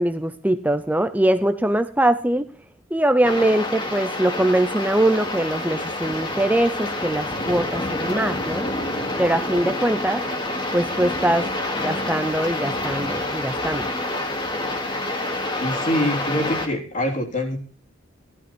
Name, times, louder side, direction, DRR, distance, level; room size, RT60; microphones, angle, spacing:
voice 1, 0.0-2.5 2.9-8.7 9.2-10.2 10.7-11.5 11.8-13.9, right 1 dB, 10° right, 10 dB, 0.7 m, -22 dB
sound 1, 3.2-16.7, left 1 dB, 25° left, 2.5 m, -27 dB
voice 2, 15.6-17.6, left 1 dB, 40° left, 0 dB, 3.4 m, -24 dB
16.5 x 12.5 x 4.4 m, 0.38 s
head